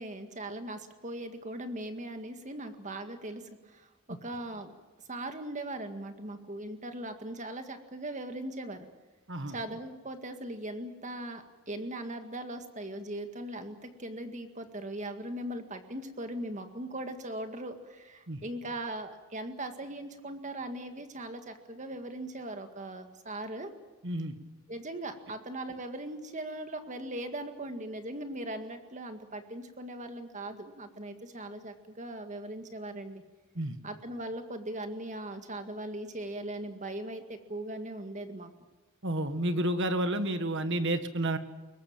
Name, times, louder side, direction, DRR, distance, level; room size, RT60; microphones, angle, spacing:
voice 1, 0.0-4.7 5.1-8.9 9.5-23.7 24.7-33.2 33.8-38.5, right 1 dB, 35° right, 7 dB, 1.9 m, -39 dB
voice 2, 24.0-24.3 33.5-33.8 39.0-41.4, right 1 dB, 55° right, 9 dB, 1.7 m, -30 dB
22.5 x 19.0 x 8.9 m, 1.2 s
head